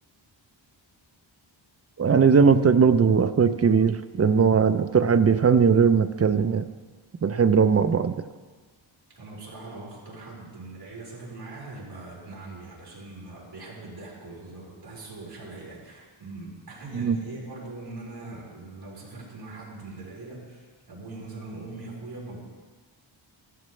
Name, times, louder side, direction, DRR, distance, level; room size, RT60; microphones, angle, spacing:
voice 1, 2.0-6.7 7.2-8.1 16.9-17.2, right 6 dB, 30° right, 10 dB, 0.5 m, -19 dB
voice 2, 9.1-22.4, right 2 dB, 50° right, -5 dB, 4.6 m, -41 dB
15.0 x 13.5 x 3.2 m, 1.5 s
wide cardioid pair, 130°, 48 cm